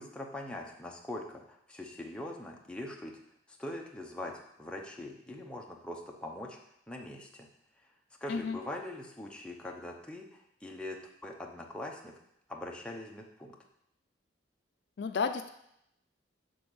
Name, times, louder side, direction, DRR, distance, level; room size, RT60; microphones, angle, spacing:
voice 1, 0.0-3.2 3.5-6.6 6.9-7.5 8.2-12.1 12.5-13.5, left 1 dB, 5° left, -1 dB, 0.7 m, -42 dB
voice 2, 15.0-15.5, left 5 dB, 60° left, 8 dB, 0.4 m, -32 dB
6.9 x 3.8 x 6.2 m, 0.78 s
head